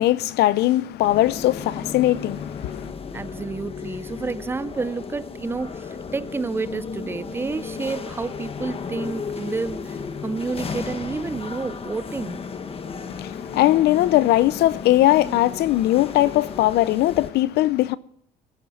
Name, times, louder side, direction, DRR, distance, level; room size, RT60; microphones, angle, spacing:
voice 1, 0.0-2.9 13.0-18.0, left 15 dB, 75° left, 0.6 m, -20 dB
sound 1, 1.0-17.3, left 5 dB, 35° left, 1.3 m, -34 dB
voice 2, 3.1-12.5, right 4 dB, 15° right, 0.5 m, -30 dB
18.0 x 7.5 x 6.1 m
cardioid pair, 110°, 17 cm